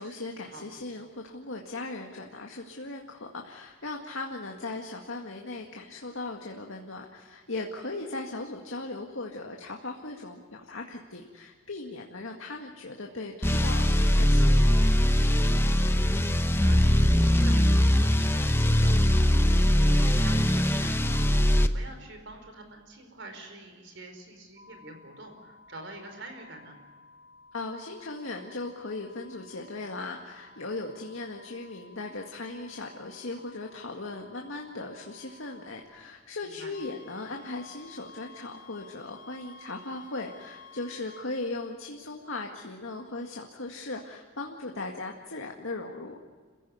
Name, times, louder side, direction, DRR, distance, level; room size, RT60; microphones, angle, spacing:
voice 1, 0.0-13.9 14.2-14.6 27.5-46.2, left 2 dB, 70° left, 1 dB, 2.0 m, -38 dB
sound 1, 13.4-21.7, equal, 10° left, 0.8 m, -21 dB
voice 2, 16.6-21.2 21.6-26.8 36.4-36.7, right 2 dB, 55° right, 6 dB, 4.9 m, -46 dB
sound 2, 24.6-35.8, left 3 dB, 30° right, 3.9 m, -56 dB
sound 3, 36.7-41.3, left 4 dB, 40° left, 2.6 m, -50 dB
27.5 x 16.0 x 9.6 m, 1.5 s
head